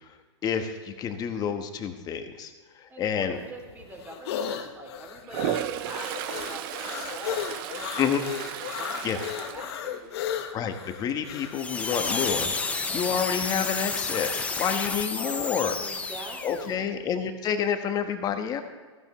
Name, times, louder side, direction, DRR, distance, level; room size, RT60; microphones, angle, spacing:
voice 1, 0.4-2.5 3.0-3.4 8.0-8.2 9.0-9.2 10.5-12.5 12.9-15.7 16.4-18.6, left 8 dB, 25° left, 6 dB, 1.3 m, -28 dB
voice 2, 2.9-8.1 8.7-10.3 14.8-16.9, right 1 dB, 10° right, 1 dB, 2.9 m, -43 dB
sound 1, 3.4-11.6, left 9 dB, 60° left, 1.2 m, -35 dB
Toilet flush, 5.2-10.4 10.8-11.2 15.7-15.8 16.1-16.8, right 11 dB, 45° right, 0.7 m, -35 dB
sound 2, 11.5-16.7, left 3 dB, 10° left, 0.9 m, -31 dB
15.5 x 15.0 x 3.2 m, 1.4 s
hypercardioid pair, 125°, 16 cm